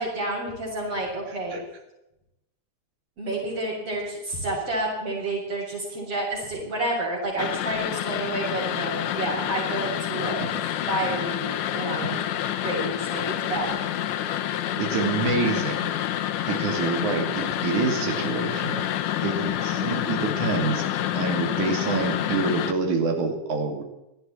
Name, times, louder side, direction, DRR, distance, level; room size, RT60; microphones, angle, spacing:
voice 1, 0.0-1.6 3.2-10.4 10.9-12.3 12.6-13.8 19.7-19.9, right 2 dB, 50° right, -3 dB, 8.1 m, -30 dB
sound 1, 7.4-22.7, left 11 dB, 90° left, 2.5 m, -28 dB
voice 2, 14.8-15.9 16.5-18.8 19.2-23.8, right 4 dB, 80° right, 3 dB, 3.9 m, -27 dB
19.0 x 13.5 x 4.4 m, 0.88 s
omnidirectional pair, 3.4 m